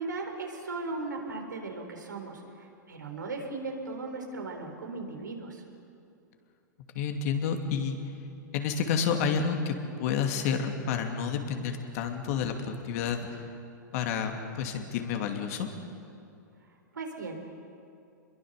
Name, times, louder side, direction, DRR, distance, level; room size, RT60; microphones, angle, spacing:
voice 1, 0.0-5.6 16.9-17.5, right 3 dB, 85° right, 3 dB, 4.0 m, -37 dB
voice 2, 6.9-8.0 8.5-9.7 10.0-13.3 13.9-15.7, left 6 dB, 55° left, 4 dB, 2.6 m, -29 dB
26.5 x 22.0 x 6.7 m, 2.6 s
hypercardioid pair, 105°, 10 cm